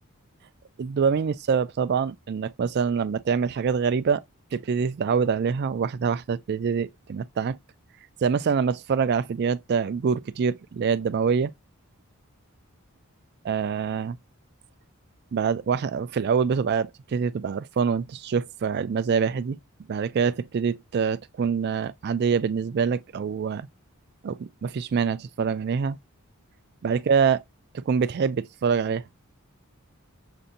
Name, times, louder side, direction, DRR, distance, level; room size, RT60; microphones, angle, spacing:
voice 1, 0.8-4.2 4.5-7.6 8.2-11.5 13.4-14.2 15.3-19.6 19.9-23.7 24.2-26.0 26.8-27.4 27.7-29.1, right 6 dB, 45° right, 0.3 m, -25 dB
6.7 x 2.7 x 2.5 m
head